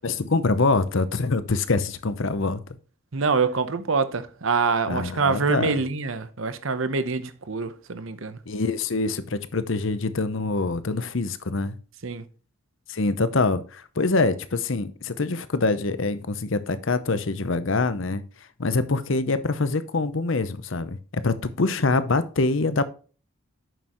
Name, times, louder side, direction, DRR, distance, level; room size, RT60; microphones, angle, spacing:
voice 1, 0.0-2.6 4.9-5.7 8.5-11.7 12.9-18.2 18.6-22.8, left 3 dB, 60° left, 0.8 m, -25 dB
voice 2, 3.1-8.4 12.0-12.2, right 4 dB, 65° right, 0.9 m, -25 dB
9.1 x 6.6 x 3.0 m
head